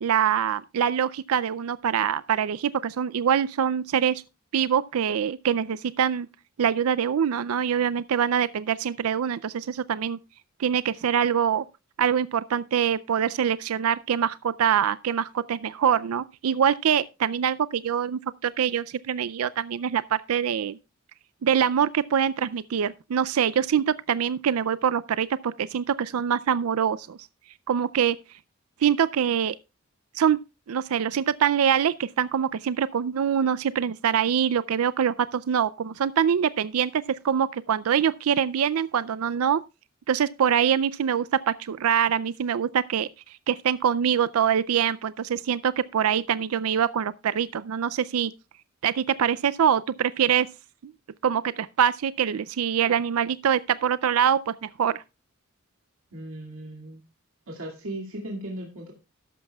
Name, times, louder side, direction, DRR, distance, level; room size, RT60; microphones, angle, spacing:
voice 1, 0.0-4.2 4.5-6.3 6.6-10.2 10.6-11.6 12.0-20.8 21.4-27.2 27.7-28.2 28.8-29.6 30.1-30.4 30.7-39.6 40.1-43.1 43.5-48.3 48.8-50.5 50.8-50.9 51.2-55.0, right 8 dB, 90° right, 0.4 m, -24 dB
voice 2, 56.1-57.0 57.5-58.9, right 1 dB, 65° right, 2.2 m, -37 dB
13.5 x 11.5 x 2.3 m
head